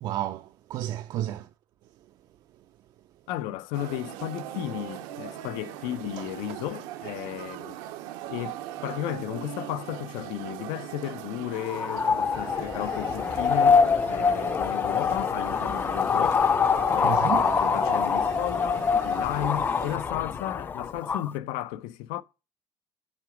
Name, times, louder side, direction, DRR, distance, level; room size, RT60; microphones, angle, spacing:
voice 1, 0.0-1.5 6.2-6.3 17.0-17.5, right 12 dB, 55° right, 0.4 m, -31 dB
voice 2, 3.3-7.8 8.3-16.5 16.9-22.2, left 13 dB, 85° left, 0.5 m, -34 dB
sound 1, 3.7-20.0, right 12 dB, 85° right, 0.7 m, -39 dB
sound 2, 11.6-21.3, left 6 dB, 25° left, 0.3 m, -25 dB
6.1 x 3.9 x 4.9 m
cardioid pair, 115°, 8 cm